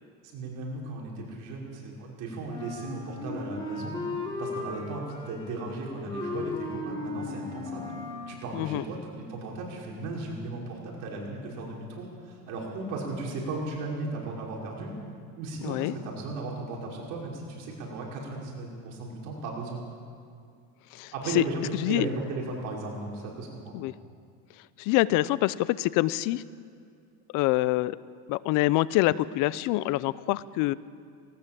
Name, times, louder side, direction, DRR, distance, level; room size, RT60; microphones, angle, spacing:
voice 1, 0.3-4.0 4.4-7.9 8.3-14.9 15.4-19.8 21.1-23.8, right 3 dB, 55° right, -2 dB, 5.7 m, -36 dB
Wind instrument woodwind instrument, 2.5-8.3, left 3 dB, 10° left, 4.0 m, -36 dB
voice 2, 8.5-8.8 15.6-15.9 20.9-21.4 21.8-22.1 23.7-23.9 24.8-26.4 27.3-28.0 28.3-30.7, left 18 dB, 60° left, 18 dB, 0.7 m, -25 dB
19.0 x 18.5 x 7.7 m, 2.3 s
supercardioid pair, 130°, 36 cm